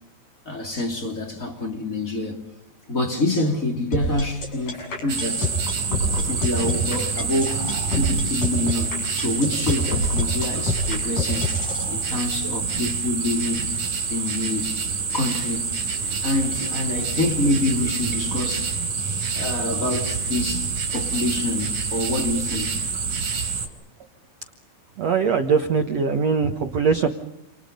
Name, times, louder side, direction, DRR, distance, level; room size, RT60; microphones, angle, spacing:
voice 1, 0.4-2.4 2.9-5.5 6.2-7.6 7.9-11.5 11.9-13.7 14.1-14.8 15.1-15.7 16.2-18.7 19.3-22.8, left 2 dB, 20° left, 3.1 m, -26 dB
sound 1, 3.9-11.9, left 2 dB, 45° left, 8.6 m, -26 dB
sound 2, 5.1-23.7, right 5 dB, 45° right, 4.8 m, -27 dB
voice 2, 25.0-27.1, right 5 dB, 85° right, 1.4 m, -21 dB
29.0 x 28.5 x 5.3 m
omnidirectional pair, 5.1 m